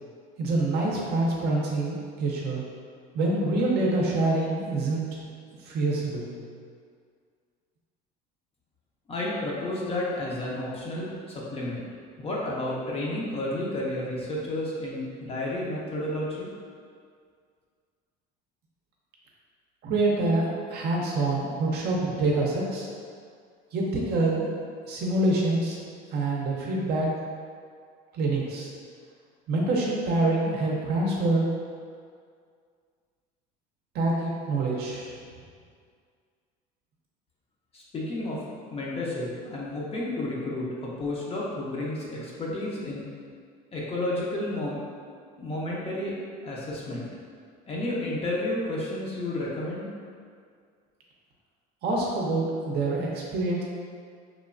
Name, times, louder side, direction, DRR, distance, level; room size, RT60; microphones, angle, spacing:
voice 1, 0.4-2.6 3.1-5.2 5.6-6.4 19.8-22.9 23.7-24.5 24.9-25.8 26.1-27.1 28.1-28.7 29.5-31.5 33.9-35.1 51.8-53.6, right 2 dB, 55° right, -3 dB, 0.5 m, -26 dB
voice 2, 9.1-11.8 12.2-16.5 37.7-38.4 38.7-43.1 43.7-44.8 45.4-46.2 46.4-47.1 47.7-49.9, left 1 dB, 30° left, -5 dB, 0.5 m, -31 dB
3.0 x 2.1 x 2.4 m, 2.1 s
supercardioid pair, 105°, 20 cm